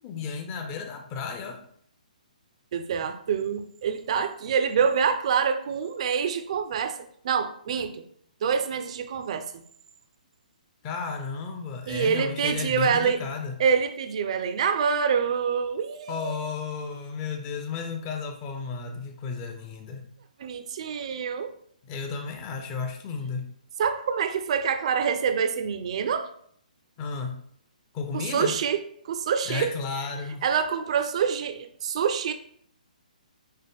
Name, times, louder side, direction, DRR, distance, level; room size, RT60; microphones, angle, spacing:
voice 1, 0.0-1.6 10.8-13.6 16.1-20.0 21.8-23.4 27.0-27.4 27.9-28.5 29.5-30.4, left 5 dB, 20° left, 4 dB, 0.5 m, -33 dB
voice 2, 2.7-7.0 7.2-8.0 8.4-9.6 11.9-13.2 13.6-16.4 20.4-21.5 23.8-26.3 28.1-28.8 29.0-29.8 30.4-32.3, right 6 dB, 45° right, 8 dB, 0.4 m, -26 dB
5.3 x 2.1 x 3.5 m, 0.64 s
hypercardioid pair, 160°, 5 cm